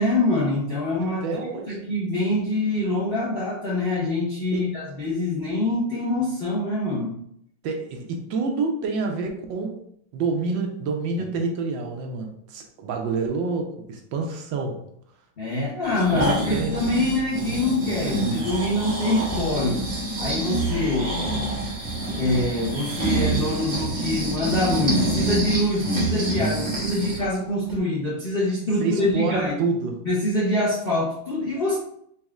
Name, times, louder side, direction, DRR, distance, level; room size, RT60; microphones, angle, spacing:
voice 1, 0.0-1.2 1.5-7.1 15.4-19.8 20.2-21.2 22.1-29.5 30.0-31.8, left 2 dB, 75° left, -5 dB, 0.5 m, -25 dB
voice 2, 1.2-1.8 4.5-4.7 7.6-9.8 10.1-14.8 15.9-16.7 28.8-30.0, right 4 dB, 75° right, 3 dB, 1.2 m, -27 dB
Breathing, 15.8-27.3 27.7-27.8, right 2 dB, 35° right, 1.4 m, -27 dB
4.1 x 3.5 x 2.3 m, 0.70 s
omnidirectional pair, 2.2 m